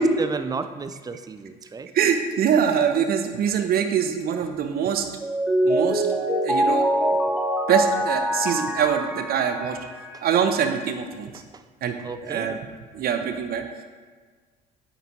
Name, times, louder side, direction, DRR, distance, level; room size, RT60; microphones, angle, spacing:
voice 1, 0.0-1.9 10.1-10.2 11.3-11.6 12.0-12.6, right 4 dB, 20° right, 10 dB, 0.4 m, -33 dB
voice 2, 1.9-5.1 5.6-6.0 6.4-6.9 7.7-9.8 10.2-11.3 11.8-12.0 12.2-12.6 12.9-13.6, right 8 dB, 50° right, 6 dB, 0.7 m, -23 dB
Mallet percussion, 5.2-10.2, equal, 5° right, 0.8 m, -24 dB
9.0 x 4.0 x 2.7 m, 1.5 s
hypercardioid pair, 60°, 20 cm